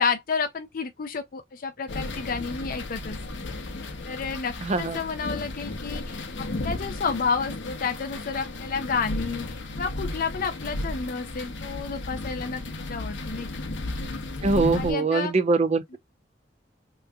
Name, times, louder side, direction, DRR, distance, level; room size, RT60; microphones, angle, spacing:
voice 1, 0.0-12.6 12.9-13.5 14.7-15.3, left 5 dB, 50° left, 0.5 m, -30 dB
sound 1, 1.9-14.9, left 2 dB, 75° left, 0.8 m, -34 dB
voice 2, 4.6-5.0 14.4-16.0, right 3 dB, 35° right, 0.5 m, -23 dB
3.4 x 3.1 x 2.2 m
head